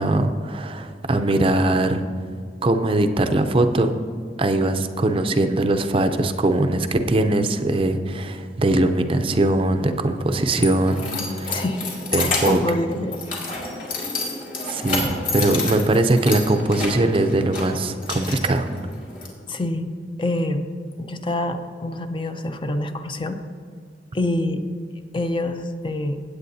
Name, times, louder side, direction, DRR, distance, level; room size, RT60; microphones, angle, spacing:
voice 1, 0.0-2.0 2.6-3.9 4.4-11.0 11.3-11.6 12.1-12.6 14.7-18.7, right 2 dB, 30° right, 7 dB, 0.5 m, -21 dB
Keys jangling, 10.2-19.3, left 3 dB, 50° left, 2.1 m, -30 dB
Splash splatter / Trickle dribble, 10.3-16.7 17.0-17.1, left 4 dB, 65° left, 2.5 m, -41 dB
voice 2, 11.5-11.8 12.2-13.2 19.5-19.9 20.2-20.7 21.0-23.4 24.1-24.6 25.1-26.2, left 1 dB, 30° left, 8 dB, 0.5 m, -26 dB
16.0 x 8.5 x 2.7 m, 2.1 s
head